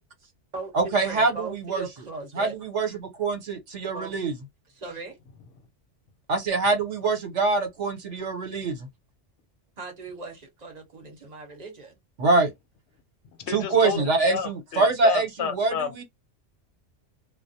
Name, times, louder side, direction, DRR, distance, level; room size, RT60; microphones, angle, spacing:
voice 1, 0.2-2.6 3.9-4.2 4.7-5.2 9.8-12.0 13.8-14.1, right 3 dB, 40° right, 0.9 m, -38 dB
voice 2, 0.7-1.8 2.4-4.3 6.3-8.9 12.2-12.5 13.5-16.0, right 3 dB, 75° right, 1.2 m, -24 dB
voice 3, 13.4-14.0 14.3-16.0, left 7 dB, 70° left, 0.8 m, -30 dB
2.3 x 2.1 x 2.6 m
omnidirectional pair, 1.2 m